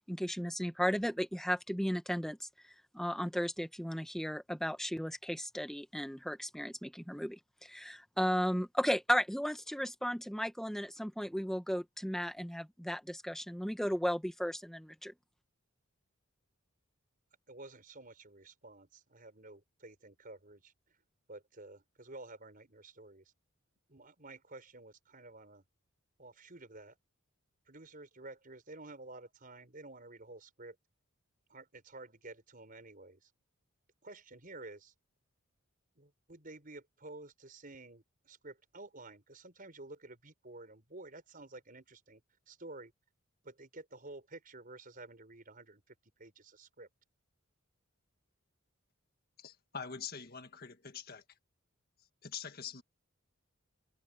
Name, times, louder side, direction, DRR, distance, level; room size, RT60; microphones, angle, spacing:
voice 1, 0.1-2.5 2.9-15.1, equal, ahead, 1.5 m, -35 dB
voice 2, 17.5-20.7 21.3-23.3 23.9-25.6 26.2-27.0 27.7-30.8 31.5-33.3 34.0-34.9 36.0-42.2 42.5-42.9 43.4-46.9, right 2 dB, 40° right, 5.2 m, -51 dB
voice 3, 49.4-51.2 52.2-52.8, left 6 dB, 45° left, 1.7 m, -44 dB
head